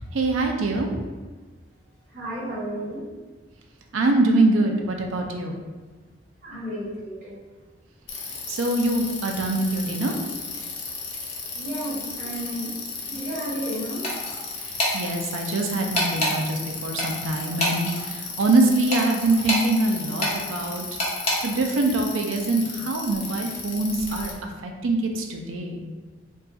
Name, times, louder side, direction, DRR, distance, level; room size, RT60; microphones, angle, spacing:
voice 1, 0.1-0.9 3.9-5.6 8.5-10.2 14.9-20.8 21.4-24.3 24.6-25.9, right 2 dB, 85° right, 3 dB, 0.4 m, -24 dB
voice 2, 2.1-3.0 6.4-7.4 11.5-12.7 13.1-14.0 17.4-17.5, equal, 45° right, -10 dB, 1.4 m, -32 dB
Bicycle, 8.1-24.3, left 4 dB, 70° left, 0.6 m, -35 dB
sound 1, 14.0-14.4 14.8-15.0 15.9-16.3 17.0-18.0 18.9-19.7 20.2-20.4 21.0-21.4, left 1 dB, 30° left, 0.7 m, -25 dB
2.5 x 2.3 x 3.7 m, 1.3 s
head